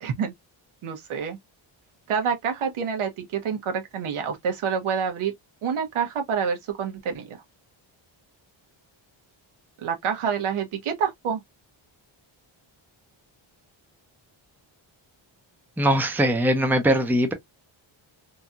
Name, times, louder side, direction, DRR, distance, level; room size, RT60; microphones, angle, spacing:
voice 1, 0.0-0.3 0.8-1.4 2.1-5.3 5.6-7.4 9.8-11.4, right 6 dB, 85° right, 1.0 m, -27 dB
voice 2, 15.8-17.3, right 1 dB, 5° right, 0.5 m, -21 dB
2.9 x 2.7 x 2.3 m
wide cardioid pair, 135°, 49 cm